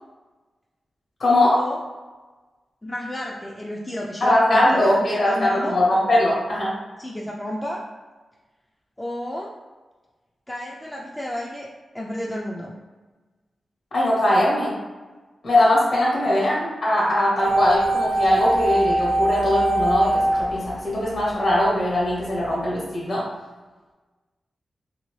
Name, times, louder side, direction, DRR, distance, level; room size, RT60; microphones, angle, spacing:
voice 1, 1.2-1.6 4.2-6.7 13.9-14.7 15.4-23.2, left 1 dB, 65° left, -6 dB, 1.2 m, -20 dB
voice 2, 2.8-5.7 7.0-7.8 9.0-9.5 10.5-11.7 11.9-12.7 16.2-16.4, left 1 dB, 10° left, -3 dB, 0.3 m, -31 dB
sound 1, 17.4-21.5 21.8-21.9, right 1 dB, 65° right, 0.6 m, -22 dB
3.3 x 2.7 x 3.0 m, 1.2 s
wide cardioid pair, 125°, 0 cm